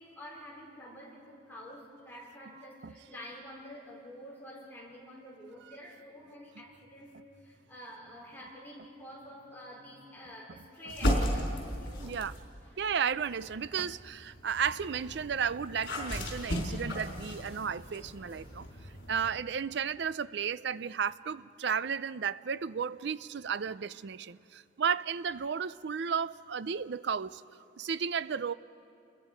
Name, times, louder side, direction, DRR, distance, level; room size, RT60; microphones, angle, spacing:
voice 1, 0.0-12.2 12.6-12.7, equal, 10° left, -3 dB, 4.5 m, -48 dB
sound 1, 10.9-12.5 13.1-19.3, equal, 60° left, 4.4 m, -35 dB
voice 2, 12.0-12.3 12.8-18.7 19.1-27.4 27.8-28.5, right 7 dB, 60° right, 17 dB, 0.5 m, -33 dB
29.5 x 21.5 x 5.2 m, 2.7 s
head